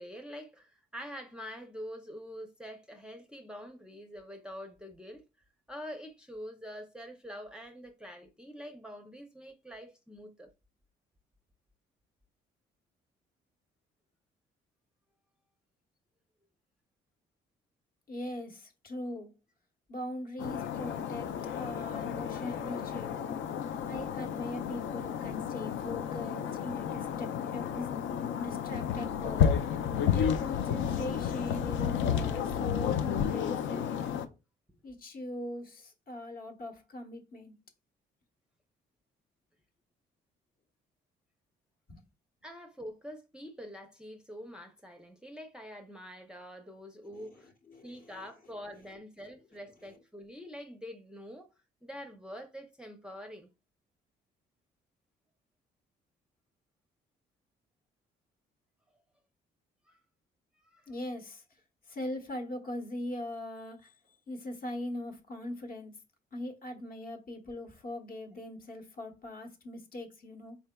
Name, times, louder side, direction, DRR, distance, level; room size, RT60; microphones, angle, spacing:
voice 1, 0.0-5.2 5.7-10.5 34.7-34.8 42.4-47.5 47.8-51.5 51.8-53.5 59.9-60.0 60.6-60.9, equal, 5° right, 0.5 m, -45 dB
voice 2, 18.1-19.3 19.9-21.3 21.6-23.4 23.8-27.9 28.4-29.7 30.1-33.9 34.8-37.6 41.9-42.0 47.1-48.2 60.9-61.4 61.9-66.0 66.3-70.6, left 1 dB, 50° left, 1.0 m, -41 dB
sound 1, 20.4-34.3, left 8 dB, 75° left, 0.5 m, -32 dB
4.3 x 3.4 x 2.2 m
cardioid pair, 90°, 20 cm